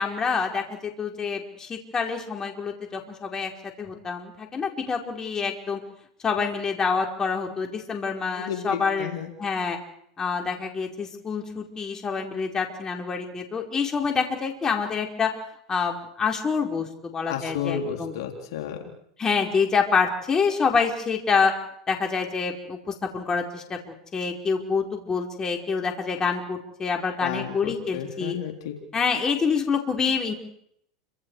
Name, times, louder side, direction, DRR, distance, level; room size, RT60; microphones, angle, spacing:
voice 1, 0.0-3.5 3.8-5.8 6.2-9.8 10.2-15.3 15.7-18.1 19.2-21.5 21.9-28.4 28.9-30.3, left 5 dB, 25° left, 2 dB, 5.1 m, -27 dB
voice 2, 8.4-9.3 17.3-18.9 27.2-28.7, left 8 dB, 70° left, 3 dB, 4.0 m, -32 dB
30.0 x 26.5 x 5.0 m, 0.70 s
hypercardioid pair, 105°, 2 cm